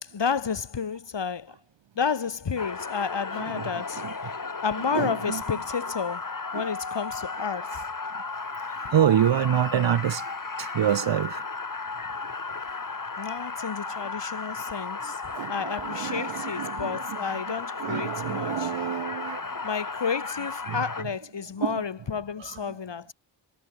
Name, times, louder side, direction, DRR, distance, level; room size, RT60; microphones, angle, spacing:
voice 1, 0.0-1.5 2.0-4.3 4.6-7.8 12.5-12.6 13.2-15.2 15.5-18.7 19.6-23.1, left 6 dB, 70° left, 3.3 m, -31 dB
sound 1, 2.6-21.0, left 4 dB, 45° left, 4.3 m, -34 dB
voice 2, 4.9-5.4 6.5-6.6 8.2-8.3 8.5-10.2 10.6-11.4 13.9-14.0 15.4-17.2 17.8-19.4 20.7-20.8 21.6-21.8 22.4-22.6, right 10 dB, 75° right, 0.9 m, -27 dB
wide cardioid pair, 70°, 44 cm